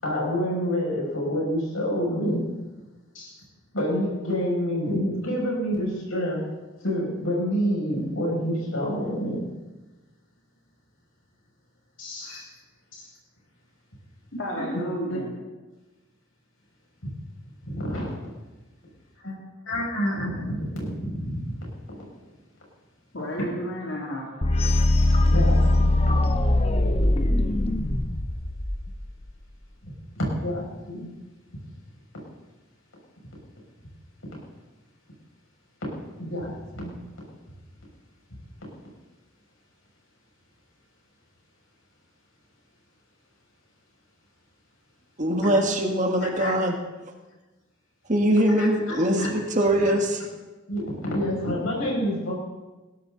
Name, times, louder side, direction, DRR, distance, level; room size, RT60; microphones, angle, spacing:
voice 1, 0.0-2.4 3.7-6.5 6.8-9.5 12.3-12.4 15.1-15.2 17.6-18.1 19.2-19.3 19.7-21.6 21.9-22.1 25.2-26.0 29.8-31.1 36.2-37.0 45.4-45.5 46.2-46.5 48.6-49.3 50.7-52.3, equal, 80° left, -3 dB, 7.1 m, -28 dB
voice 2, 12.0-12.4 14.3-15.3 23.1-24.3, equal, 60° left, -3 dB, 3.1 m, -32 dB
sound 1, 24.4-29.3, left 1 dB, 30° left, 0.8 m, -21 dB
voice 3, 45.2-46.8 48.1-50.2, right 1 dB, 35° right, 2 dB, 1.9 m, -22 dB
21.0 x 16.5 x 4.1 m, 1.2 s
head